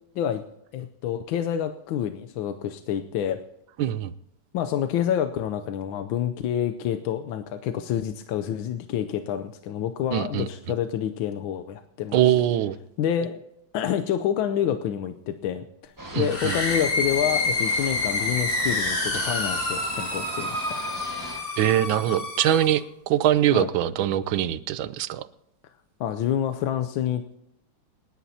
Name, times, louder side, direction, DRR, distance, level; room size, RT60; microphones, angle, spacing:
voice 1, 0.7-3.4 4.5-12.3 13.0-13.4 13.7-20.6 23.5-23.7 26.0-27.4, left 9 dB, 85° left, 9 dB, 1.5 m, -28 dB
voice 2, 3.8-4.1 10.1-10.5 12.1-12.8 16.1-16.6 21.6-25.2, right 12 dB, 85° right, 15 dB, 1.4 m, -23 dB
sound 1, 16.0-21.4, right 1 dB, 10° right, 1.5 m, -38 dB
sound 2, 16.2-22.8, left 3 dB, 30° left, 1.8 m, -28 dB
28.0 x 10.0 x 2.8 m, 0.80 s
omnidirectional pair, 2.1 m